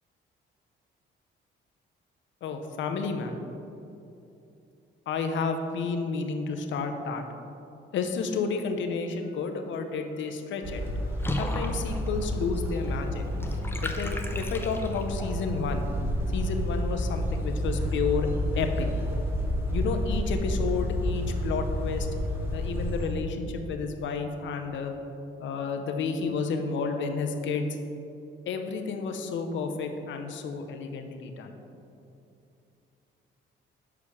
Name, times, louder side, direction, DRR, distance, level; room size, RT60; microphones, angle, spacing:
voice 1, 2.4-3.4 5.1-7.2 7.9-10.9 11.4-13.2 13.7-15.9 16.3-18.3 18.6-18.9 19.7-22.1 22.5-24.9 25.4-27.7 28.5-31.6, left 5 dB, 70° left, 5 dB, 0.8 m, -31 dB
sound 1, 10.6-23.1, equal, 10° right, 1.3 m, -30 dB
Water / Bathtub (filling or washing), 11.2-15.3, left 1 dB, 10° left, 0.6 m, -36 dB
6.9 x 5.0 x 4.9 m, 2.7 s
cardioid pair, 90°, 20 cm